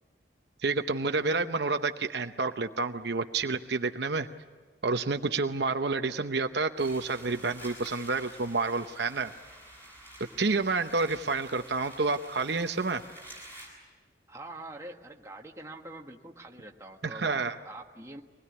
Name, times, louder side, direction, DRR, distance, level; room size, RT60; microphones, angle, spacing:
voice 1, 0.6-4.3 4.8-9.3 10.4-13.0 17.0-17.6, right 3 dB, 65° right, 7 dB, 0.8 m, -29 dB
sound 1, 6.8-13.7, right 1 dB, 10° left, 7.8 m, -49 dB
voice 2, 14.3-18.2, right 2 dB, 15° right, 1 dB, 1.5 m, -45 dB
24.5 x 20.5 x 9.8 m, 1.4 s
head